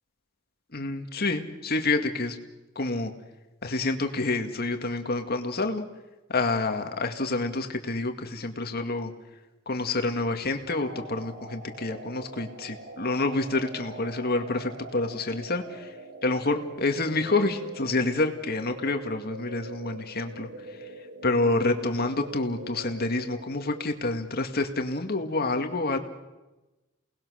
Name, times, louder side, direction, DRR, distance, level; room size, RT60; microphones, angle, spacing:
voice 1, 0.7-2.4 2.8-3.1 3.6-5.9 6.3-9.1 9.7-15.9 16.2-20.9 21.2-26.0, left 2 dB, 50° left, 6 dB, 2.1 m, -28 dB
sound 1, 10.7-23.9, right 2 dB, 60° right, 2.0 m, -44 dB
29.0 x 19.5 x 6.5 m, 1.1 s
head